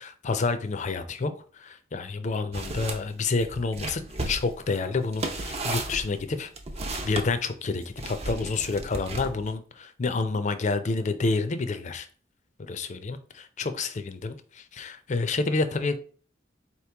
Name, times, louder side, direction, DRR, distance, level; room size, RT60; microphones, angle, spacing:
voice 1, 0.0-6.5 7.0-12.1 12.6-16.0, left 3 dB, 40° left, 10 dB, 0.5 m, -29 dB
sound 1, 2.5-3.0 3.4-7.3 8.0-9.5, right 2 dB, 35° right, 0.6 m, -34 dB
4.2 x 3.0 x 3.3 m, 0.41 s
head